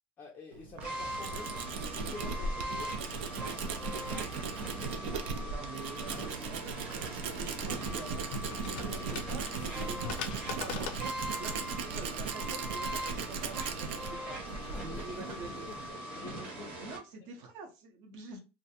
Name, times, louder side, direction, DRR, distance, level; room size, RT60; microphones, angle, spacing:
voice 1, 0.2-3.6 10.7-11.0 11.4-11.6 14.7-15.8 16.1-16.9 17.2-17.3, left 4 dB, 25° left, 0.4 m, -49 dB
Tools, 0.5-15.9, right 5 dB, 90° right, 0.4 m, -38 dB
sound 1, 0.8-17.0, right 1 dB, 25° right, 1.0 m, -41 dB
voice 2, 5.5-11.1 11.4-15.6 16.8-18.4, right 3 dB, 65° right, 0.7 m, -47 dB
sound 2, 6.9-12.3, left 6 dB, 80° left, 0.5 m, -44 dB
2.4 x 2.1 x 2.7 m
supercardioid pair, 155°, 6 cm